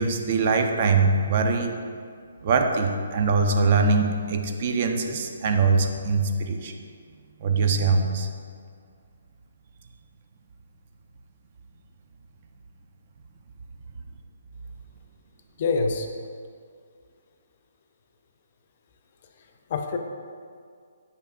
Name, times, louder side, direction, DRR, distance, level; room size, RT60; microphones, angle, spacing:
voice 1, 0.0-1.7 2.4-6.7 7.4-8.3, right 4 dB, 45° right, 4 dB, 0.4 m, -22 dB
voice 2, 15.6-16.1 19.7-20.0, left 4 dB, 45° left, 5 dB, 0.4 m, -25 dB
5.4 x 3.4 x 2.4 m, 2.2 s
figure-of-eight pair, 145°, 0 cm